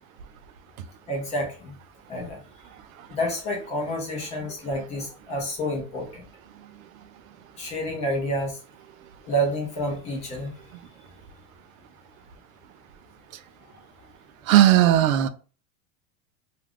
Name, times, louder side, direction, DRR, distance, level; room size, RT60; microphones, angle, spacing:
voice 1, 1.1-1.7 2.1-2.4 3.1-6.2 7.6-8.6 9.3-10.5, equal, 15° left, 0 dB, 0.5 m, -29 dB
voice 2, 14.5-15.3, right 12 dB, 85° right, 11 dB, 0.5 m, -16 dB
2.4 x 2.4 x 3.4 m, 0.37 s
supercardioid pair, 160°, 40 cm